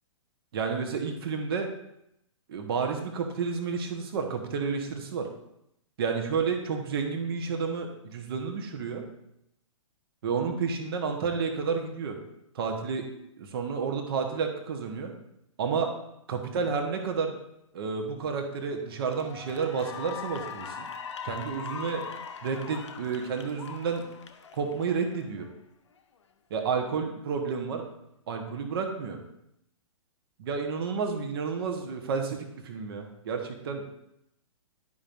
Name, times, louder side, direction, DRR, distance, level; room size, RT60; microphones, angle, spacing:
voice 1, 0.5-1.7 2.5-5.3 6.0-9.0 10.2-12.2 12.5-13.1 13.4-15.1 15.6-15.9 16.3-17.3 17.7-20.9 21.2-22.0 22.4-24.0 24.5-25.5 26.5-27.8 28.3-29.2 30.4-33.8, right 5 dB, 45° right, 4 dB, 1.3 m, -30 dB
Cheering / Applause, 18.3-18.6 19.0-25.5, left 7 dB, 60° left, 0.7 m, -41 dB
11.0 x 5.5 x 2.6 m, 0.80 s
figure-of-eight pair, 115°, 17 cm